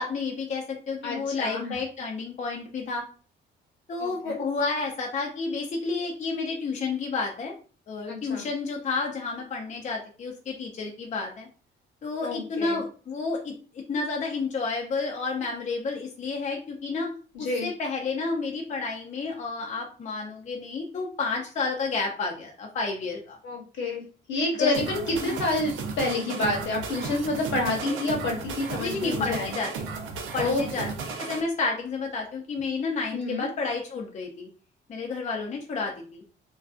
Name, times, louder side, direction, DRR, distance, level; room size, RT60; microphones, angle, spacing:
voice 1, 0.0-3.1 3.9-7.5 7.9-11.5 12.0-17.1 17.4-23.4 24.6-24.7 25.2-25.4 27.8-28.0 28.8-29.7 30.3-30.9 31.2-34.5 34.9-36.2, left 4 dB, 40° left, 0 dB, 0.5 m, -30 dB
voice 2, 1.0-1.7 4.0-4.4 8.1-8.4 12.2-12.8 17.3-17.7 23.4-24.0 24.3-29.5 30.4-30.9 33.1-33.5, left 2 dB, 70° left, 1 dB, 0.9 m, -28 dB
sound 1, 24.7-31.4, right 4 dB, 90° right, 0.5 m, -35 dB
2.4 x 2.2 x 2.4 m, 0.38 s
cardioid pair, 90°, 20 cm